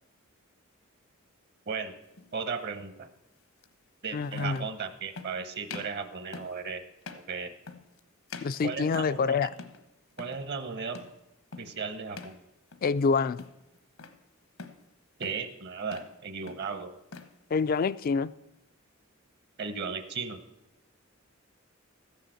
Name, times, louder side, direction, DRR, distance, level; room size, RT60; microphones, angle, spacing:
sound 1, 2.1-2.3 3.6-3.7 4.3-4.8 5.1-5.4 5.7-6.0 6.3-6.6 7.0-7.3 7.7-8.0 8.3-9.3 9.6-9.9 10.1-10.4 10.9-11.2 11.5-11.8 12.1-12.4 12.7-13.1 13.4-14.2 14.6-14.9 15.2-15.5 15.8-16.2 16.5-17.3, left 4 dB, 80° left, 1.0 m, -45 dB
voice 1, 2.3-3.1 4.0-6.8 7.1-7.5 8.6-9.4 10.2-11.0 11.6-12.4 15.2-16.9 19.6-20.4, right 5 dB, 50° right, 0.9 m, -35 dB
voice 2, 4.1-4.7 8.4-9.5 12.8-13.5 17.5-18.3, left 5 dB, 45° left, 0.3 m, -27 dB
13.5 x 6.7 x 7.7 m
head